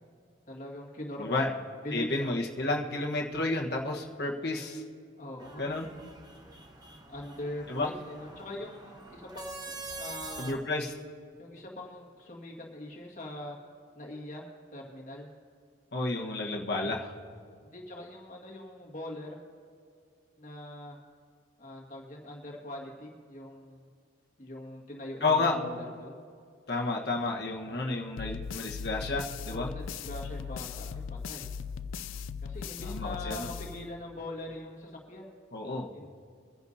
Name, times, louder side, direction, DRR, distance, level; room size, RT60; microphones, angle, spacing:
voice 1, 0.5-1.6 1.8-2.4 5.2-5.7 7.1-10.6 11.4-13.6 14.0-15.3 17.6-19.4 20.4-21.0 21.6-23.8 24.4-26.2 29.5-31.5 32.4-35.3 35.9-36.1, left 1 dB, 40° left, -2 dB, 1.9 m, -42 dB
voice 2, 1.2-1.5 1.9-4.8 5.6-5.9 7.7-7.9 10.4-10.9 15.9-17.1 25.2-25.6 26.7-29.7 32.8-33.5 35.5-35.9, left 2 dB, 55° left, 0 dB, 1.3 m, -31 dB
sound 1, 5.4-10.5, right 3 dB, 20° right, 1.0 m, -45 dB
sound 2, 28.2-34.3, left 6 dB, 85° left, 0.4 m, -39 dB
24.0 x 10.5 x 2.8 m, 2.3 s
head